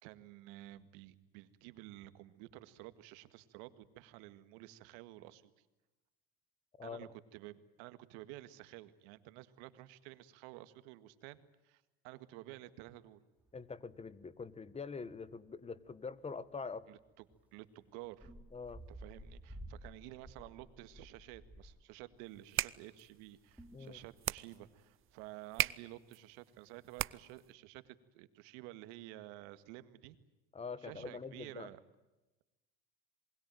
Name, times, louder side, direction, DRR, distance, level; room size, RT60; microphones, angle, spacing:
voice 1, 0.0-5.6 6.8-13.2 16.9-17.3 17.5-18.3 18.9-30.2 30.8-31.8, right 16 dB, 75° right, 13 dB, 1.9 m, -52 dB
voice 2, 6.8-7.1 13.5-16.9 18.5-18.8 23.7-24.0 30.5-31.7, left 5 dB, 20° left, 18 dB, 1.5 m, -44 dB
sound 1, 13.4-14.1 14.4-14.5 14.8-15.3 15.9-16.1 16.4-16.5 17.3-17.4 18.0-22.8 23.1-24.8 25.1-25.3, right 1 dB, 5° right, 3.3 m, -54 dB
sound 2, 22.3-27.5, right 13 dB, 40° right, 0.8 m, -40 dB
27.5 x 21.5 x 9.2 m, 1.1 s
supercardioid pair, 95°, 31 cm